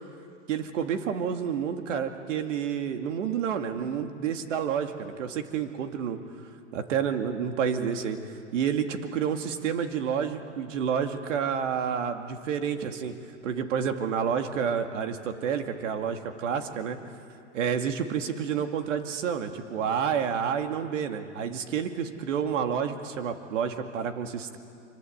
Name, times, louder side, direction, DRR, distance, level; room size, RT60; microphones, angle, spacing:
voice 1, 0.5-6.2 6.7-8.2 8.5-13.2 13.4-17.0 17.5-24.6, right 7 dB, 70° right, 6 dB, 2.5 m, -29 dB
26.0 x 25.5 x 8.1 m, 2.4 s
hypercardioid pair, 120°, 39 cm